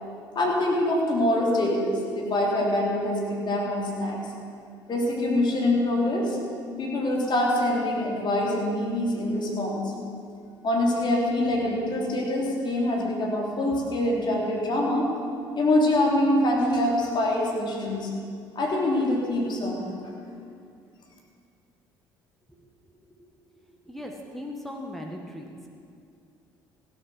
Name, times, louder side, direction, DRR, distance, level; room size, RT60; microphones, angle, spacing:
voice 1, 0.4-4.2 4.9-6.4 6.8-9.9 10.6-15.1 15.6-18.1 18.6-20.1, left 1 dB, 45° left, -2 dB, 3.4 m, -25 dB
voice 2, 23.7-25.7, left 1 dB, ahead, 0 dB, 1.7 m, -38 dB
16.5 x 8.5 x 6.3 m, 2.4 s
hypercardioid pair, 55°, 11 cm